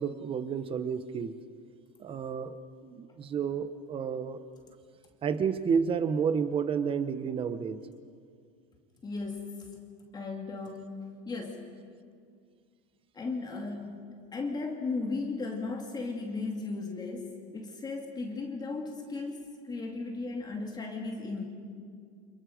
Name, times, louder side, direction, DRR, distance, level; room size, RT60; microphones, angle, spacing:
voice 1, 0.0-1.3 2.0-2.6 2.8-4.4 5.2-7.8, right 6 dB, 25° right, 11 dB, 1.1 m, -30 dB
voice 2, 9.0-9.7 10.1-11.7 13.1-14.1 14.3-21.4, left 3 dB, 20° left, 1 dB, 2.3 m, -36 dB
30.0 x 27.0 x 5.1 m, 2.2 s
supercardioid pair, 140°, 21 cm